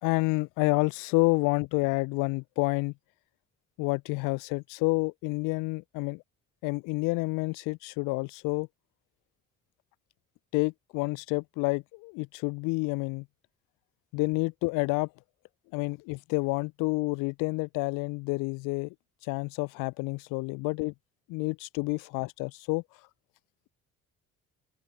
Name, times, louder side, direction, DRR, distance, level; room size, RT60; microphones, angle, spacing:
voice 1, 0.0-2.9 3.8-6.2 6.6-8.7 10.5-13.3 14.1-15.1 15.7-18.9 19.3-20.9 21.3-22.8, left 27 dB, 55° left, 0.4 m, -29 dB
open air
figure-of-eight pair, 45°, 39 cm